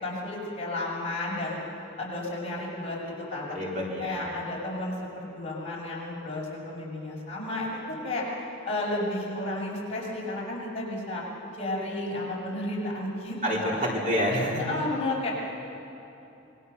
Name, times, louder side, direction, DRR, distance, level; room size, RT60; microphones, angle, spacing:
voice 1, 0.0-1.6 2.0-3.0 3.3-3.6 4.0-8.3 8.6-11.2 11.5-13.8 14.6-15.3, left 2 dB, 30° left, -5 dB, 6.6 m, -32 dB
voice 2, 3.5-4.2 13.4-14.6, equal, 40° right, -3 dB, 3.8 m, -27 dB
27.0 x 22.0 x 6.9 m, 2.9 s
head